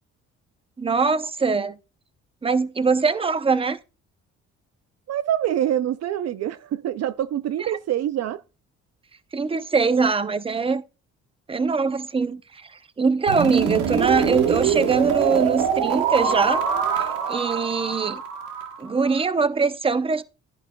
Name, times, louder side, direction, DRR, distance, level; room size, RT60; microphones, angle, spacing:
voice 1, 0.8-1.8 2.4-3.8 7.6-7.7 9.3-10.8 11.5-12.7 13.0-16.7 17.0-18.2 18.8-20.2, right 4 dB, 20° right, 0.7 m, -22 dB
voice 2, 5.1-8.4, right 11 dB, 60° right, 0.5 m, -25 dB
sound 1, 13.3-19.2, right 7 dB, 90° right, 1.3 m, -24 dB
10.5 x 9.9 x 2.3 m
cardioid pair, 90°, 30 cm